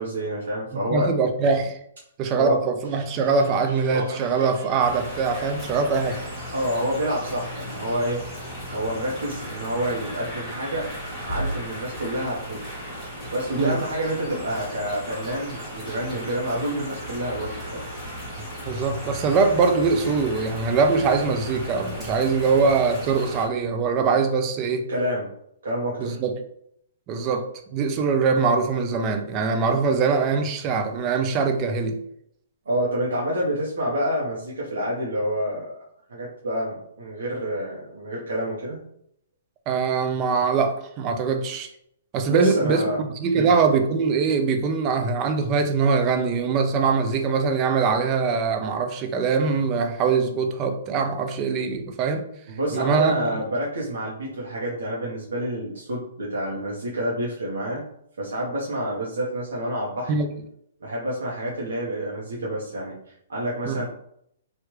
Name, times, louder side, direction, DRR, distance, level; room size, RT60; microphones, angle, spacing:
voice 1, 0.0-1.1 2.3-2.6 6.5-8.2 8.7-11.0 11.2-12.6 13.3-17.8 24.9-25.3 25.6-26.2 32.6-35.8 36.1-38.8 42.3-43.0 43.3-43.5 52.5-57.8 58.2-60.1 60.8-63.8, equal, 85° right, -5 dB, 0.9 m, -28 dB
voice 2, 0.9-1.8 2.2-6.2 13.6-13.8 18.7-24.8 26.0-26.4 27.1-27.5 27.7-32.0 39.7-41.7 42.1-52.2 52.7-53.4 60.1-60.3 63.6-63.8, right 5 dB, 25° right, 6 dB, 0.4 m, -22 dB
sound 1, 2.8-8.1, right 2 dB, 60° right, 1.1 m, -41 dB
sound 2, 4.8-23.5, equal, 5° left, 1.4 m, -35 dB
3.2 x 2.4 x 3.0 m, 0.72 s
hypercardioid pair, 165°, 0 cm